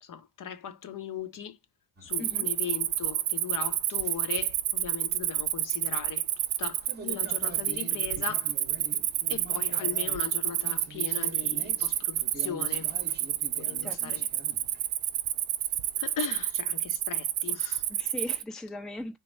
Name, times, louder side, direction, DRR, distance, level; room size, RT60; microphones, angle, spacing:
voice 1, 0.0-1.6 2.0-6.3 6.6-8.5 9.3-12.9 13.5-14.3 16.0-17.9, left 8 dB, 40° left, 0.6 m, -38 dB
sound 1, 2.0-2.3 3.9-4.3 6.5-15.2 15.7-16.2, right 3 dB, 20° right, 0.8 m, -46 dB
Cricket, 2.1-18.4, right 13 dB, 70° right, 0.5 m, -29 dB
voice 2, 13.8-14.2 17.9-19.2, left 1 dB, ahead, 0.5 m, -39 dB
3.1 x 2.3 x 4.3 m
hypercardioid pair, 45°, 49 cm